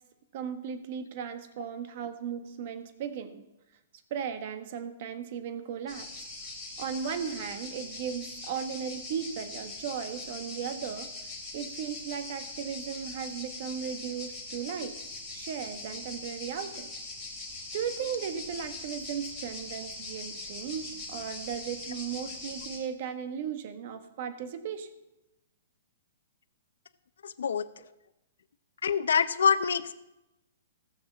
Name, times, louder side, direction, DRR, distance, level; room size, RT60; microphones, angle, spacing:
voice 1, 0.3-3.4 4.1-6.3 6.8-14.9 15.3-16.9 17.7-24.9 27.8-27.9, right 8 dB, 40° right, 9 dB, 1.2 m, -36 dB
sound 1, 5.9-22.8, left 2 dB, 5° left, 3.5 m, -41 dB
voice 2, 27.2-27.7 28.8-29.9, left 6 dB, 90° left, 10 dB, 0.7 m, -25 dB
16.5 x 6.4 x 7.3 m, 0.96 s
hypercardioid pair, 170°, 0 cm